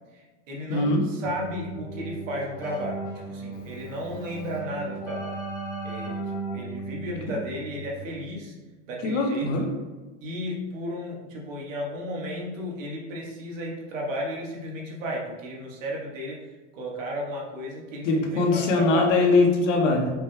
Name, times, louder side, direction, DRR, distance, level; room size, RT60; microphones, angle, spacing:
voice 1, 0.1-5.4 5.8-6.2 6.5-8.5 8.9-9.7 10.2-16.4 16.7-19.1, equal, 85° right, -2 dB, 1.3 m, -34 dB
voice 2, 0.7-1.0 9.0-9.7 18.0-20.1, left 3 dB, 75° left, 1 dB, 1.0 m, -21 dB
Keyboard (musical), 1.2-8.5, right 3 dB, 10° left, 0.4 m, -36 dB
5.0 x 2.1 x 3.2 m, 1.2 s
supercardioid pair, 175°, 38 cm